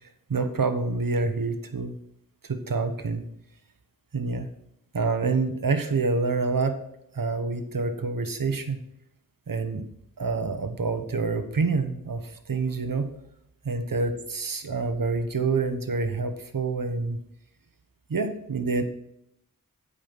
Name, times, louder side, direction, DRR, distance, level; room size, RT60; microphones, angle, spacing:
voice 1, 0.3-2.0 2.4-3.2 4.1-4.5 4.9-6.8 7.1-8.8 9.5-9.9 10.2-13.1 13.6-17.2 18.1-18.8, right 4 dB, 70° right, 8 dB, 1.1 m, -27 dB
8.4 x 5.5 x 6.0 m, 0.76 s
wide cardioid pair, 45°, 35 cm